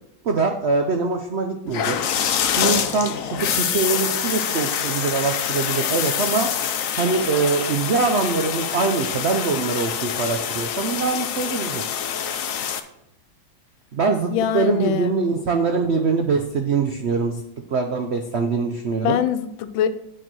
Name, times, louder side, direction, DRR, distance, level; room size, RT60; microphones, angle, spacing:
voice 1, 0.2-2.0 2.6-6.5 7.0-11.8 13.9-17.4 17.7-19.2, right 4 dB, 90° right, 4 dB, 0.5 m, -23 dB
sound 1, 1.7-12.8, left 8 dB, 70° left, 0.8 m, -25 dB
voice 2, 14.3-15.2 19.0-19.9, left 9 dB, 90° left, 10 dB, 1.5 m, -23 dB
9.0 x 4.6 x 6.1 m, 0.80 s
omnidirectional pair, 2.1 m